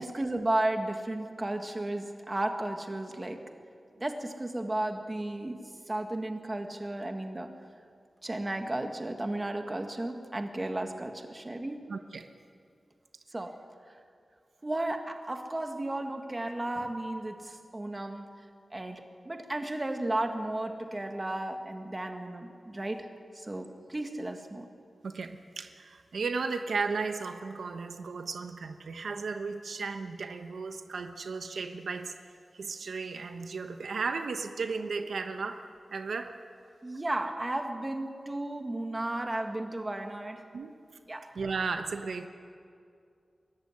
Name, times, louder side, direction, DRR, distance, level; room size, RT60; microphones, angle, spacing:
voice 1, 0.0-3.5 4.0-7.5 8.2-11.8 13.3-13.6 14.6-18.3 18.7-23.1 23.3-24.7 36.8-40.5 41.1-41.3, right 1 dB, 25° right, 5 dB, 1.8 m, -34 dB
voice 2, 11.9-12.3 25.0-32.1 32.5-35.6 35.9-36.4 40.5-40.7 41.3-42.3, right 4 dB, 90° right, 7 dB, 1.1 m, -35 dB
24.0 x 14.5 x 9.7 m, 2.3 s
wide cardioid pair, 105°, 0 cm